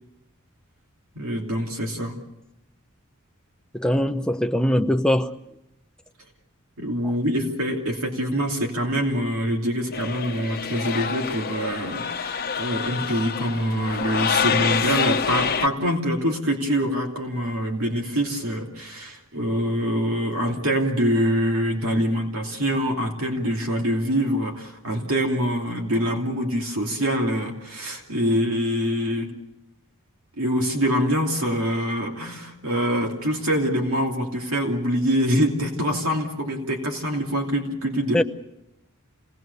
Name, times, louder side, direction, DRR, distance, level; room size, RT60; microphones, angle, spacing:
voice 1, 1.1-2.2 6.8-29.3 30.4-38.2, equal, 70° right, 2.8 m, -25 dB
voice 2, 3.7-5.4 38.1-38.2, left 1 dB, 5° left, 0.8 m, -21 dB
sound 1, 9.9-15.7, left 6 dB, 45° left, 1.0 m, -26 dB
27.5 x 19.0 x 6.8 m
head